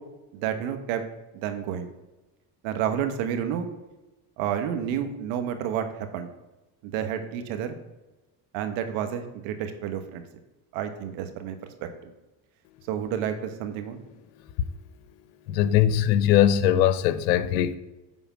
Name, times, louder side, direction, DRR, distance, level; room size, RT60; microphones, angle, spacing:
voice 1, 0.3-1.0 1.3-1.9 2.6-3.7 4.4-6.3 6.8-7.7 8.5-10.2 10.7-11.7 12.0-12.1 12.9-14.0, right 9 dB, 70° right, 1.4 m, -30 dB
voice 2, 15.5-17.8, left 11 dB, 80° left, 0.7 m, -21 dB
9.4 x 3.9 x 6.2 m
hypercardioid pair, 80°, 49 cm